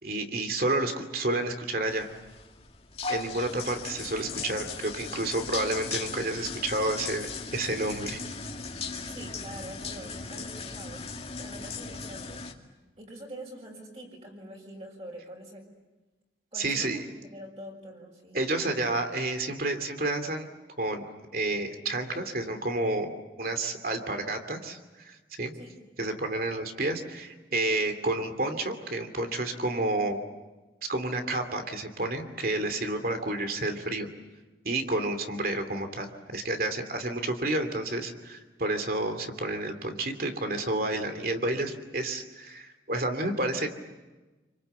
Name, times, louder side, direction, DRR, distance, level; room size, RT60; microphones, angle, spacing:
voice 1, 0.0-2.1 3.1-8.2 16.5-17.0 18.3-20.5 20.8-21.1 21.3-23.1 23.4-25.5 26.0-30.2 30.9-34.1 34.6-43.7, right 2 dB, 55° right, 7 dB, 2.8 m, -30 dB
sound 1, 1.9-12.5, left 4 dB, 35° left, 2.2 m, -38 dB
voice 2, 9.1-11.0 11.4-12.4 13.0-15.6 16.5-18.4 24.0-24.2 25.5-25.7, right 1 dB, 35° right, -1 dB, 6.0 m, -45 dB
28.0 x 25.0 x 8.3 m, 1.2 s
head